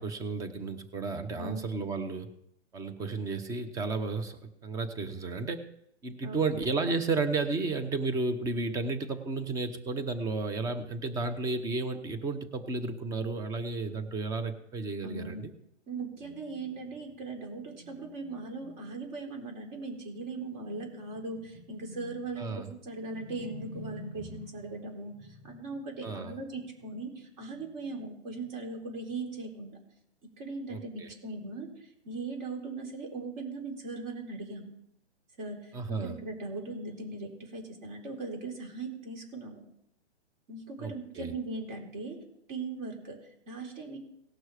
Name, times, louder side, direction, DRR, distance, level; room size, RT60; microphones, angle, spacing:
voice 1, 0.0-2.3 2.7-5.6 6.0-15.5 22.4-22.7 26.0-26.3 30.7-31.1 35.7-36.1 40.8-41.3, right 3 dB, 10° right, 9 dB, 0.7 m, -33 dB
voice 2, 1.4-1.9 6.2-6.5 15.0-15.5 15.9-29.8 30.4-34.7 35.4-39.6 40.5-42.2 42.5-44.0, right 3 dB, 40° right, 2 dB, 3.9 m, -39 dB
18.0 x 6.2 x 4.9 m, 0.75 s
hypercardioid pair, 145°, 34 cm